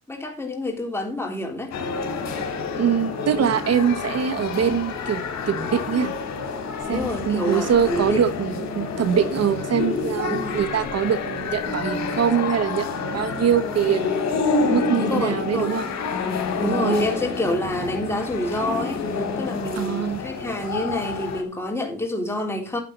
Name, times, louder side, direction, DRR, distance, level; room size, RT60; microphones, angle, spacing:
voice 1, 0.1-1.7 6.8-8.2 10.2-10.6 14.9-15.8 16.6-22.8, left 1 dB, 10° left, 3.5 m, -28 dB
sound 1, 1.7-21.4, left 4 dB, 60° left, 3.4 m, -28 dB
voice 2, 2.7-6.1 6.9-14.2 14.7-15.9 16.6-17.1 19.8-20.2, right 8 dB, 55° right, 1.1 m, -23 dB
12.0 x 8.3 x 4.0 m
cardioid pair, 90°, 30 cm